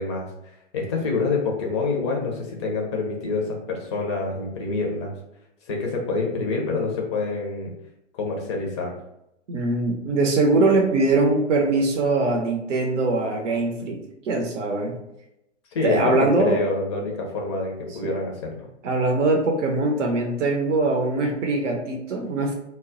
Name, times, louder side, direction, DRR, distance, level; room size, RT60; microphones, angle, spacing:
voice 1, 0.0-5.1 5.7-7.7 8.2-8.9 15.7-18.6, left 3 dB, 25° left, 0 dB, 0.4 m, -27 dB
voice 2, 9.5-14.0 14.3-15.0 15.8-16.6 18.0-18.2 18.8-22.5, right 2 dB, 75° right, 1 dB, 0.6 m, -22 dB
2.2 x 2.0 x 3.7 m, 0.84 s
hypercardioid pair, 125°, 37 cm